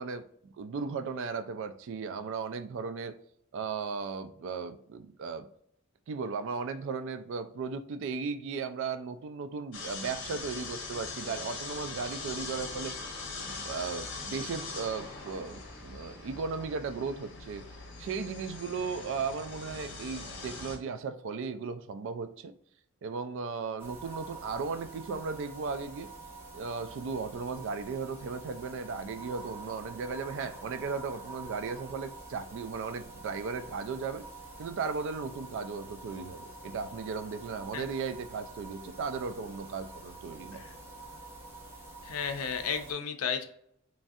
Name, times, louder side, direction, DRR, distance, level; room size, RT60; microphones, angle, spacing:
voice 1, 0.0-3.2 3.5-5.5 6.1-12.9 13.4-17.7 18.0-22.5 23.0-26.1 26.5-34.3 34.6-40.6, right 5 dB, 60° right, 0.3 m, -36 dB
sound 1, 9.7-20.8, left 3 dB, 60° left, 0.8 m, -41 dB
sound 2, 23.8-42.9, right 2 dB, 10° right, 0.7 m, -47 dB
voice 2, 42.0-43.5, left 7 dB, 90° left, 0.5 m, -33 dB
3.1 x 2.6 x 2.4 m
head